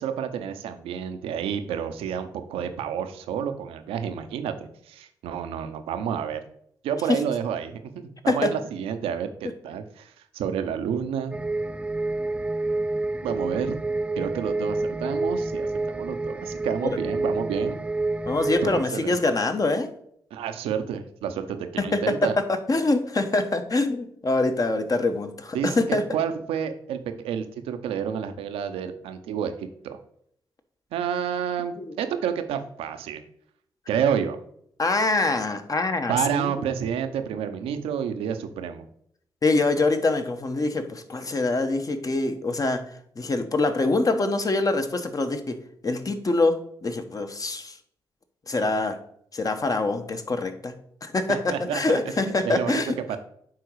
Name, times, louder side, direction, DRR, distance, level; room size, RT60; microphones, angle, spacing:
voice 1, 0.0-6.4 6.8-11.3 13.2-13.8 14.2-17.8 18.6-19.2 20.3-22.4 25.5-25.8 26.1-30.0 30.9-33.2 33.9-34.4 36.1-38.8 51.3-52.1 52.4-52.8 53.1-53.2, right 8 dB, 80° right, 8 dB, 0.7 m, -29 dB
sound 1, 11.3-18.8, right 2 dB, 10° right, 0.3 m, -28 dB
voice 2, 18.3-19.9 21.9-22.1 22.5-26.0 31.8-31.9 34.8-36.5 39.4-42.8 43.2-45.6 45.8-47.8 48.5-49.0 49.3-50.7 51.0-53.2, left 2 dB, 40° left, 7 dB, 1.1 m, -24 dB
9.5 x 3.9 x 4.7 m, 0.68 s
hypercardioid pair, 40°, 10 cm